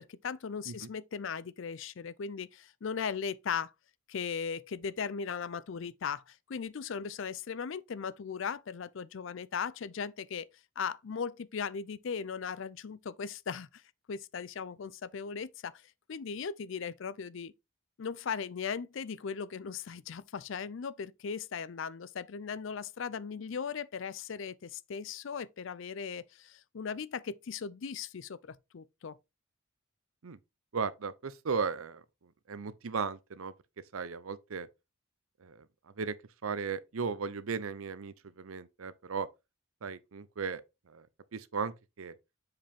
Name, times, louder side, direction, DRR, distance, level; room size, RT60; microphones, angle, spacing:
voice 1, 0.0-3.7 4.1-10.5 10.8-13.8 14.1-15.8 16.1-17.5 18.0-29.2, left 6 dB, 65° left, 0.5 m, -38 dB
voice 2, 30.7-32.0 32.5-33.5 33.9-34.7 35.4-35.7 36.0-36.1 36.4-39.3 39.8-40.6 40.9-41.1 41.3-42.1, right 5 dB, 85° right, 0.6 m, -36 dB
7.4 x 4.9 x 3.5 m
head